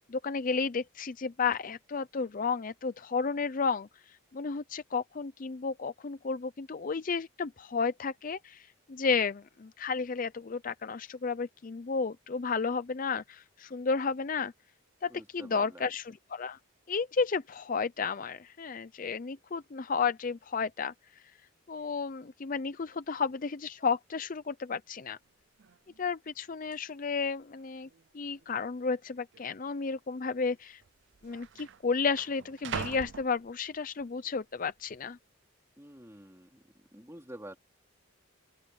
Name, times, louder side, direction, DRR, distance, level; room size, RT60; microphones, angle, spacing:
voice 1, 0.1-3.9 4.3-14.5 15.0-16.6 16.9-20.9 21.7-25.2 26.0-27.9 28.1-30.8 31.2-35.2, left 5 dB, 40° left, 0.5 m, -32 dB
voice 2, 15.1-15.9 35.8-36.6 36.9-37.6, right 1 dB, 15° right, 3.0 m, -48 dB
sound 1, 25.3-25.4 25.6-26.0 26.7-26.8 27.6-28.1 28.3-28.5 29.3-29.5 30.5-30.6 30.8-34.0 34.5-34.9, right 7 dB, 55° right, 0.5 m, -43 dB
open air
head